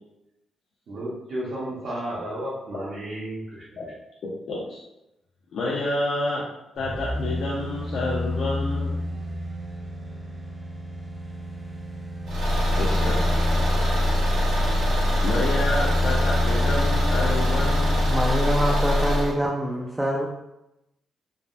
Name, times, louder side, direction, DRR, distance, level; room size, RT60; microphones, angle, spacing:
voice 1, 0.9-3.6, right 1 dB, 60° right, -9 dB, 0.8 m, -32 dB
voice 2, 4.2-4.8 5.5-6.4 6.8-9.0 12.8-13.2 15.2-18.1, left 2 dB, 55° left, -5 dB, 0.5 m, -29 dB
sound 1, 6.7-18.3 18.7-18.8, left 1 dB, 25° right, 0.8 m, -31 dB
Car / Engine, 12.3-19.3, left 1 dB, 90° right, 1.0 m, -23 dB
voice 3, 18.1-20.3, equal, 5° right, -3 dB, 0.3 m, -25 dB
3.3 x 2.0 x 2.5 m, 0.90 s
wide cardioid pair, 165°, 0 cm